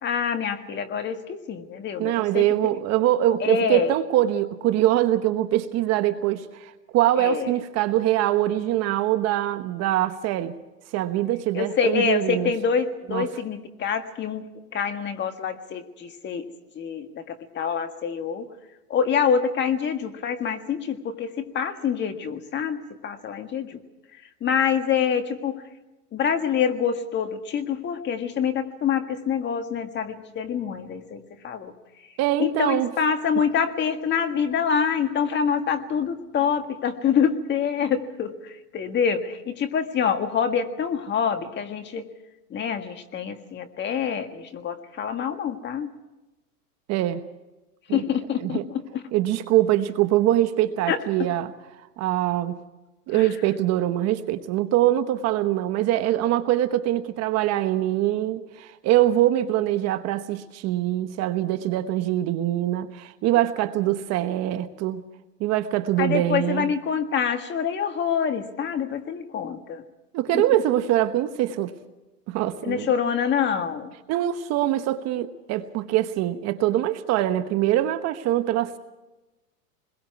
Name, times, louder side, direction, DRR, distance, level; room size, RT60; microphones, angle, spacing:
voice 1, 0.0-2.4 3.4-4.0 7.1-7.5 11.5-16.4 16.7-18.5 18.9-23.8 24.4-25.6 26.1-31.7 32.4-42.1 42.5-45.9 47.9-49.0 50.9-51.0 53.1-53.3 66.0-69.8 70.3-70.4 72.6-73.9, left 7 dB, 25° left, 7 dB, 1.7 m, -26 dB
voice 2, 2.0-10.6 10.9-12.5 13.1-13.2 32.2-32.9 46.9-47.2 47.9-48.0 48.4-48.6 49.1-51.5 52.0-52.6 53.1-65.0 65.4-66.7 70.1-71.7 72.3-72.9 74.1-78.8, right 13 dB, 35° right, 10 dB, 1.1 m, -23 dB
27.5 x 21.5 x 4.7 m, 1.1 s
hypercardioid pair, 130°, 47 cm